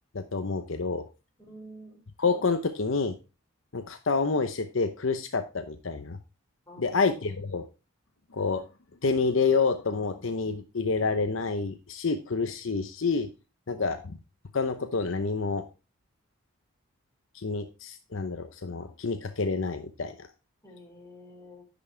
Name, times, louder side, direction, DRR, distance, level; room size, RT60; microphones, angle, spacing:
voice 1, 0.1-1.1 2.2-3.2 3.7-6.2 6.8-7.7 8.3-8.7 9.0-13.3 13.7-14.0 14.5-15.6 17.3-20.3, left 4 dB, 65° left, 8 dB, 0.8 m, -28 dB
voice 2, 1.4-2.0 6.7-7.4 13.7-14.0 20.6-21.6, equal, 15° left, -2 dB, 4.9 m, -49 dB
10.5 x 6.1 x 3.3 m, 0.30 s
head